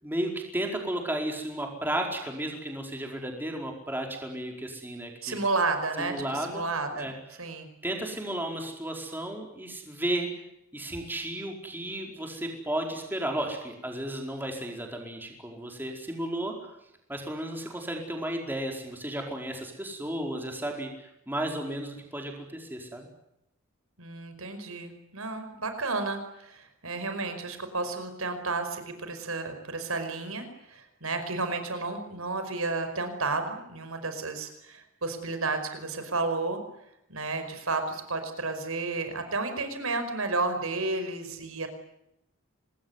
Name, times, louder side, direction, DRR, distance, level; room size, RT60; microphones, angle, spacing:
voice 1, 0.0-5.4 6.0-6.6 6.9-7.4 7.8-10.3 10.7-16.5 17.1-23.1, right 1 dB, 10° right, 2 dB, 4.7 m, -33 dB
voice 2, 5.2-7.1 7.4-7.7 24.0-30.4 30.7-36.6 37.1-41.7, right 3 dB, 85° right, 8 dB, 5.1 m, -32 dB
25.5 x 21.0 x 9.7 m, 0.84 s
head